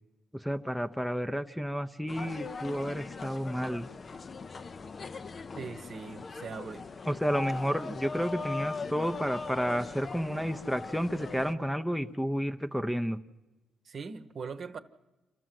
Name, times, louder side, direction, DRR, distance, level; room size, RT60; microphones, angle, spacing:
voice 1, 0.3-3.9 7.1-13.2, equal, ahead, 0.7 m, -31 dB
sound 1, 2.1-11.6, left 4 dB, 40° left, 0.6 m, -40 dB
voice 2, 5.6-6.8 13.8-14.8, right 5 dB, 50° right, 1.0 m, -40 dB
27.0 x 13.0 x 7.7 m
cardioid pair, 85°, 0 cm